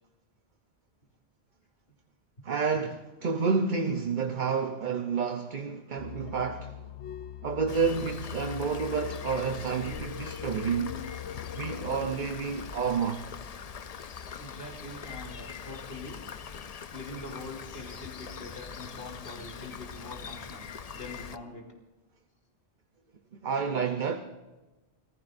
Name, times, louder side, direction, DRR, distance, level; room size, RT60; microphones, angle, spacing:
voice 1, 2.4-6.8 7.4-11.0 11.5-13.3 23.4-24.2, right 5 dB, 50° right, 0.9 m, -29 dB
sound 1, 6.0-12.2, left 10 dB, 80° left, 1.0 m, -41 dB
Rain, 7.7-21.4, left 6 dB, 45° left, 0.5 m, -43 dB
voice 2, 14.3-16.2 16.9-21.7, left 2 dB, 60° left, 3.1 m, -43 dB
29.0 x 15.0 x 2.6 m
omnidirectional pair, 1.1 m